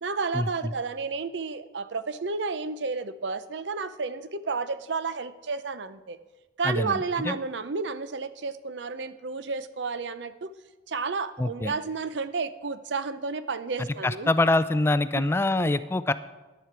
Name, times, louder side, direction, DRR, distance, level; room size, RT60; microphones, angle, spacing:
voice 1, 0.0-6.2 6.6-10.5 10.9-14.3 15.1-15.7, right 4 dB, 75° right, 13 dB, 0.7 m, -31 dB
voice 2, 6.6-7.3 11.4-11.7 14.0-16.1, left 2 dB, 15° left, 14 dB, 0.3 m, -25 dB
14.0 x 10.5 x 4.6 m, 1.2 s
head